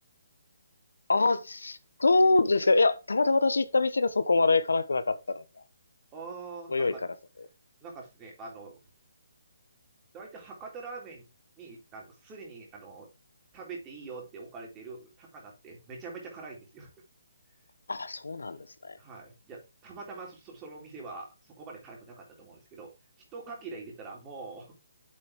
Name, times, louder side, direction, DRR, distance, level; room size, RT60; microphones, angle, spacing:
voice 1, 1.1-5.4 6.7-6.9 17.9-19.0, left 3 dB, 90° left, 1.1 m, -25 dB
voice 2, 6.1-7.0 7.8-8.8 10.1-11.3 11.6-13.1 13.5-16.9 19.0-22.9 23.3-24.8, right 4 dB, 20° right, 3.9 m, -44 dB
7.8 x 7.5 x 3.7 m
hypercardioid pair, 155°, 0 cm